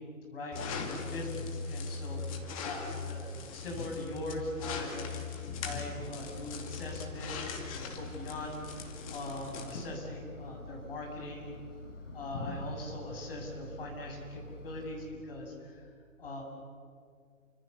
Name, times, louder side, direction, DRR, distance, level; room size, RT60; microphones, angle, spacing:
voice 1, 0.3-2.2 2.6-5.1 5.4-7.3 7.7-8.5 9.1-11.6 12.1-15.9 16.2-16.4, left 1 dB, 45° left, 0 dB, 7.7 m, -40 dB
sound 1, 0.5-9.9, left 5 dB, 25° left, 2.4 m, -40 dB
Engine, 5.9-15.1, left 2 dB, 60° left, 4.0 m, -48 dB
29.0 x 26.0 x 7.0 m, 2.1 s
figure-of-eight pair, 135°, 41 cm